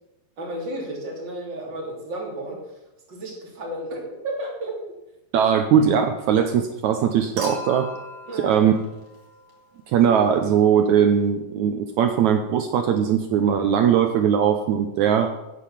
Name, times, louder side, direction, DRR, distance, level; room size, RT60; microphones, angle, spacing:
voice 1, 0.4-2.6 3.1-4.8 8.3-8.6, right 1 dB, 30° right, -2 dB, 3.6 m, -32 dB
voice 2, 5.3-7.9 8.4-8.7 9.9-15.4, right 8 dB, 75° right, 6 dB, 1.8 m, -20 dB
Human group actions / Chink clink / Liquid, 7.4-9.8 11.2-11.3, left 1 dB, 55° right, 5.0 m, -38 dB
10.0 x 9.0 x 7.5 m, 0.95 s
omnidirectional pair, 4.1 m